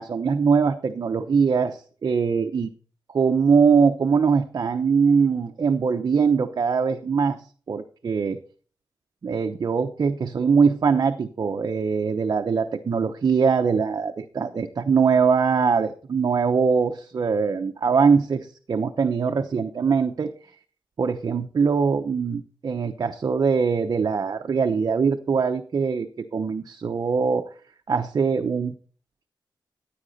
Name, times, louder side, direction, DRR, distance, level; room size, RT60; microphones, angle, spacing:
voice 1, 0.0-2.7 3.1-8.4 9.2-20.3 21.0-27.4 27.9-28.7, right 5 dB, 50° right, 5 dB, 0.8 m, -22 dB
15.0 x 8.7 x 4.1 m, 0.42 s
wide cardioid pair, 145°, 8 cm